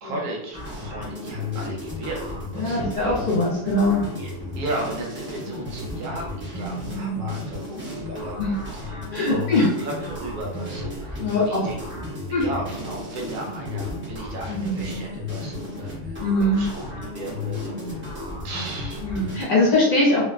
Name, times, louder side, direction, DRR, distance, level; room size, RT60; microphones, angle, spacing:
voice 1, 0.0-3.1 4.1-11.8 12.3-18.1 18.4-19.5, right 2 dB, 80° right, -1 dB, 1.2 m, -35 dB
sound 1, 0.5-19.4, left 2 dB, 15° right, 0.5 m, -33 dB
voice 2, 2.5-4.0 6.8-7.3 8.4-8.6 9.1-9.7 11.2-11.6 12.3-12.4 14.5-14.9 16.2-16.7 19.0-20.2, left 1 dB, 55° left, -6 dB, 1.3 m, -22 dB
3.0 x 2.1 x 2.3 m, 0.76 s
omnidirectional pair, 1.6 m